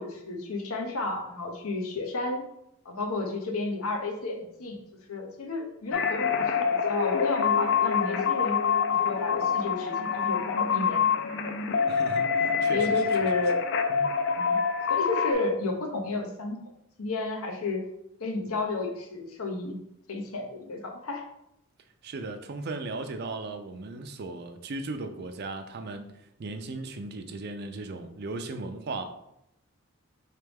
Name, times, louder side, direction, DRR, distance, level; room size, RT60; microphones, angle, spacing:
voice 1, 0.0-2.5 2.8-4.8 5.1-8.6 9.0-11.2 11.7-11.9 12.7-13.6 14.4-14.6 14.9-16.6 17.0-17.8 18.2-19.8 20.1-21.3, left 2 dB, 85° left, 0.8 m, -32 dB
sound 1, 5.9-15.3, left 6 dB, 55° left, 0.4 m, -26 dB
voice 2, 11.9-13.0 13.9-14.2 22.0-29.0, right 3 dB, 50° right, 0.4 m, -37 dB
3.9 x 3.3 x 3.4 m
head